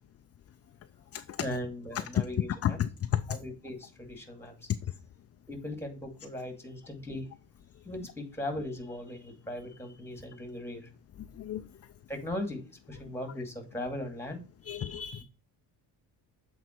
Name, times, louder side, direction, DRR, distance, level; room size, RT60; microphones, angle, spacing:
voice 1, 1.4-2.8 3.3-4.7 5.5-7.3 7.8-10.9 12.1-12.6 12.9-14.4, left 1 dB, 5° left, 2.4 m, -38 dB
voice 2, 2.6-3.4 11.2-11.6 14.6-15.2, left 10 dB, 40° left, 0.5 m, -31 dB
8.1 x 4.2 x 4.5 m
cardioid pair, 100°, 39 cm